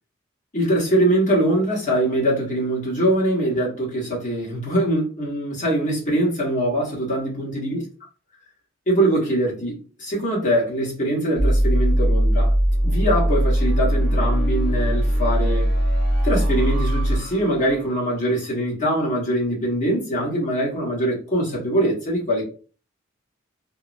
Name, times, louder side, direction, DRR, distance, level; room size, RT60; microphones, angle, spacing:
voice 1, 0.5-7.8 8.9-12.5 12.8-15.7 16.2-22.4, right 1 dB, 40° left, 1.4 m, -23 dB
sound 1, 11.4-18.3, equal, 65° left, 1.4 m, -20 dB
3.6 x 2.2 x 2.5 m
head